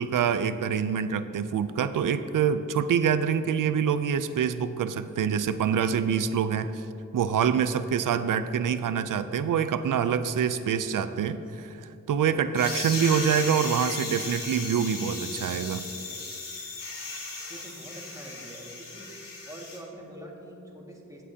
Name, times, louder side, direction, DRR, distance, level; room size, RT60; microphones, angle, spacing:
voice 1, 0.0-6.8 7.1-15.8, right 7 dB, 75° right, 12 dB, 0.5 m, -26 dB
sound 1, 12.5-19.8, left 3 dB, 80° left, 2.2 m, -36 dB
voice 2, 17.5-19.2 19.5-21.2, right 1 dB, 10° right, -2 dB, 1.9 m, -44 dB
16.5 x 7.5 x 2.8 m, 2.7 s
wide cardioid pair, 85°, 32 cm